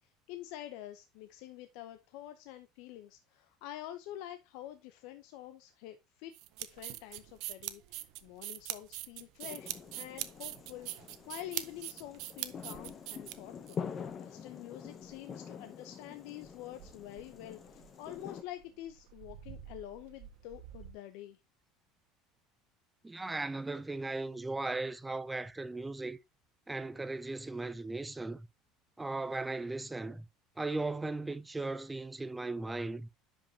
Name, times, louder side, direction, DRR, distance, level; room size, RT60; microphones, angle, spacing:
voice 1, 0.3-6.3 6.6-10.9 11.3-13.8 14.2-21.4, left 13 dB, 60° left, 0.7 m, -47 dB
sound 1, 6.3-13.8, right 17 dB, 50° right, 0.6 m, -41 dB
sound 2, 9.4-18.4, left 7 dB, 25° left, 0.7 m, -46 dB
sound 3, 14.1-20.9, right 9 dB, 75° right, 1.3 m, -54 dB
voice 2, 23.0-26.2 26.7-28.5 29.0-30.2 30.6-33.1, right 2 dB, 5° right, 0.3 m, -37 dB
10.5 x 5.3 x 2.8 m
cardioid pair, 180°, 0 cm